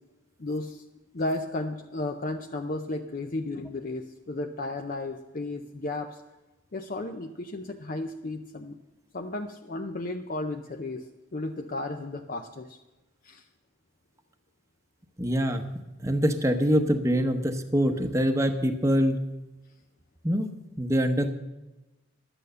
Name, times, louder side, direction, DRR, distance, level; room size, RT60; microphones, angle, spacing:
voice 1, 0.4-0.8 1.1-6.2 6.7-8.8 9.1-11.0 11.3-12.8 13.2-13.4, left 2 dB, 45° left, 5 dB, 0.6 m, -34 dB
voice 2, 15.2-15.6 16.0-19.2 20.2-20.5 20.8-21.3, equal, 15° right, 6 dB, 0.9 m, -24 dB
11.5 x 9.0 x 6.7 m, 1.1 s
head